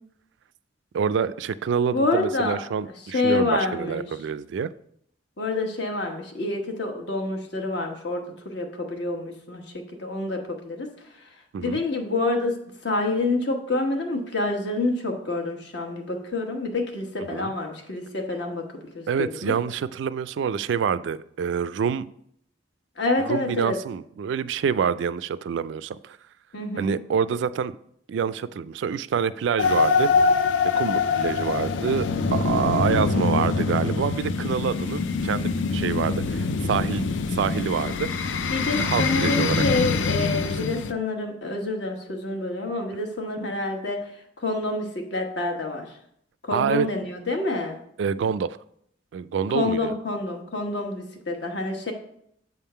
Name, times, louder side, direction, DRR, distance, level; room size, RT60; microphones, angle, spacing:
voice 1, 0.9-4.7 11.5-11.8 17.2-17.5 19.1-22.1 23.3-26.2 26.8-27.8 28.1-30.1 30.8-38.3 38.7-39.6 40.3-40.5 46.5-46.9 48.0-48.6 49.1-49.9, right 7 dB, 75° right, 16 dB, 0.3 m, -27 dB
voice 2, 1.9-2.6 3.1-4.1 5.4-10.9 11.6-12.6 12.8-18.7 18.9-19.5 23.0-23.8 26.5-27.0 38.5-44.1 44.4-45.9 46.4-47.8 49.5-51.9, left 2 dB, 65° left, 2 dB, 1.2 m, -27 dB
sound 1, 29.6-40.9, left 4 dB, 85° left, 0.4 m, -24 dB
7.7 x 3.6 x 5.6 m, 0.70 s
head